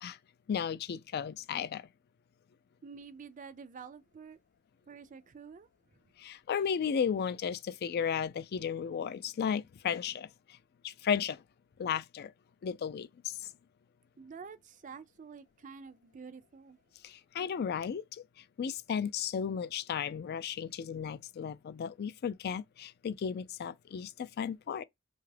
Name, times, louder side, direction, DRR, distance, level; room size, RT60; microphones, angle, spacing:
voice 1, 0.5-1.9 6.2-10.3 10.8-11.4 11.8-12.3 12.6-13.5 17.0-18.2 18.6-24.8, left 7 dB, 50° left, 0.3 m, -34 dB
voice 2, 2.8-4.4 4.9-5.7 14.2-16.8, right 5 dB, 40° right, 0.4 m, -48 dB
2.9 x 2.3 x 3.2 m
head